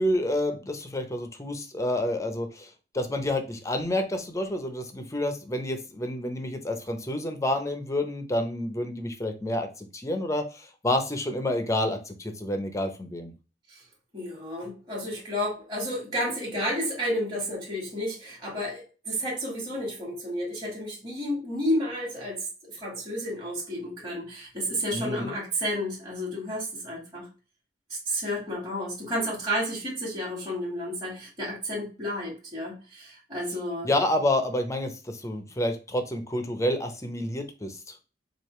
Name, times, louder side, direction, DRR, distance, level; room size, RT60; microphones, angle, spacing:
voice 1, 0.0-13.3 24.9-25.3 33.8-37.8, left 1 dB, 20° left, 6 dB, 0.7 m, -29 dB
voice 2, 14.1-27.3 28.0-33.9, equal, 25° right, -6 dB, 1.5 m, -31 dB
4.8 x 2.6 x 3.1 m, 0.33 s
head